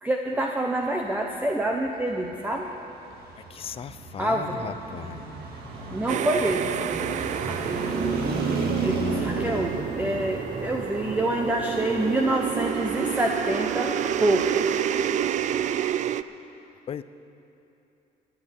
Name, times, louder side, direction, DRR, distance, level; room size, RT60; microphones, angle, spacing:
voice 1, 0.0-2.7 4.2-4.7 5.9-7.0 7.5-8.3 8.8-14.7, right 1 dB, 10° right, 1 dB, 0.9 m, -27 dB
Traffic noise roadway noise, 2.1-15.8, right 4 dB, 65° right, 2.0 m, -34 dB
voice 2, 3.5-5.3 16.9-17.0, left 8 dB, 35° left, 14 dB, 0.4 m, -36 dB
sound 1, 6.1-16.2, right 10 dB, 45° right, 0.4 m, -29 dB
13.5 x 8.0 x 9.7 m, 2.8 s
cardioid pair, 110°, 17 cm